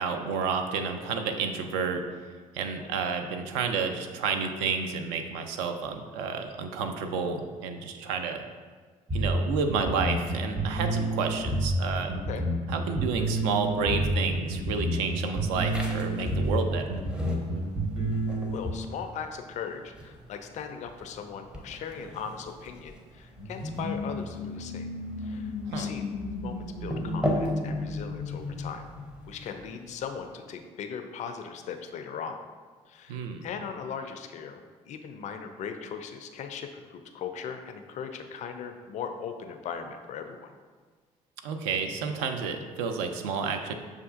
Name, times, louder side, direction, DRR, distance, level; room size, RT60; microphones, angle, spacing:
voice 1, 0.0-2.0 2.5-8.4 9.1-12.1 12.7-16.8 25.7-25.9 33.1-33.4 41.4-43.7, right 5 dB, 60° right, 5 dB, 0.4 m, -30 dB
voice 2, 2.6-2.9 11.2-11.4 12.3-12.4 18.5-24.9 25.2-26.1 26.4-28.8 29.3-32.4 32.9-40.5, left 6 dB, 40° left, 6 dB, 0.4 m, -39 dB
sound 1, 9.1-18.7, right 1 dB, 30° right, 1.1 m, -28 dB
sound 2, 15.7-30.4, equal, 5° right, 0.6 m, -39 dB
sound 3, 23.4-29.8, left 3 dB, 90° right, 0.8 m, -35 dB
6.4 x 2.4 x 2.4 m, 1.5 s
figure-of-eight pair, 50°, 18 cm